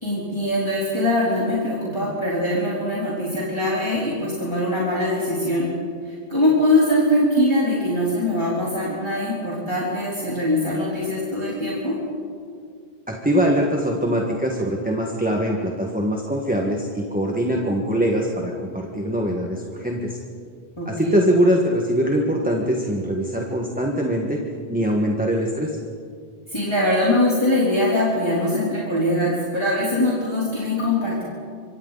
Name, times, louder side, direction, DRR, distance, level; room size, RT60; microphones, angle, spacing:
voice 1, 0.0-5.7 6.3-12.0 20.8-21.2 26.5-31.2, left 1 dB, 25° left, -7 dB, 3.6 m, -22 dB
voice 2, 13.1-20.2 20.8-24.4 24.7-25.8, equal, 10° right, -1 dB, 1.7 m, -22 dB
26.0 x 25.0 x 4.1 m, 2.2 s
omnidirectional pair, 1.0 m